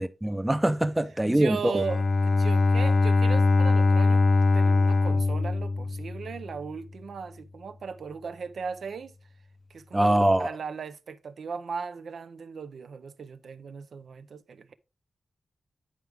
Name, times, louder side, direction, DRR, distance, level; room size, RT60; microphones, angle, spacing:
voice 1, 0.0-1.8 9.9-10.5, right 1 dB, 10° right, 0.5 m, -23 dB
voice 2, 1.2-4.2 4.5-9.1 9.7-14.7, right 5 dB, 80° right, 0.5 m, -37 dB
Bowed string instrument, 1.7-6.5, left 3 dB, 55° left, 0.5 m, -22 dB
9.5 x 4.8 x 3.4 m
wide cardioid pair, 155°, 0 cm